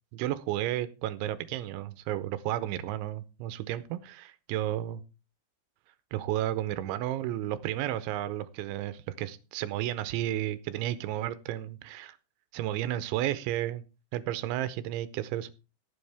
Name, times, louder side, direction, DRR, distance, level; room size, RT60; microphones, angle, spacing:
voice 1, 0.1-5.0 6.1-12.2 12.5-13.8 14.1-15.5, right 13 dB, 80° right, 13 dB, 2.9 m, -32 dB
17.5 x 7.8 x 3.4 m, 0.32 s
omnidirectional pair, 5.6 m